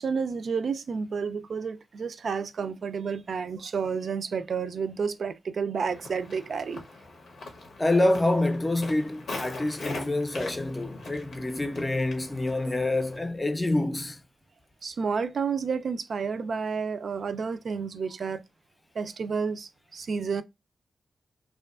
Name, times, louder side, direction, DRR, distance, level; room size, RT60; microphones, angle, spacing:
voice 1, 0.0-6.8 14.8-18.4 19.0-20.4, right 5 dB, 70° right, 0.3 m, -30 dB
Walk footsteps, 5.8-13.2, left 2 dB, 90° left, 0.7 m, -42 dB
voice 2, 7.8-14.2, left 2 dB, 20° left, 0.5 m, -26 dB
2.6 x 2.3 x 2.3 m
cardioid pair, 70°, 0 cm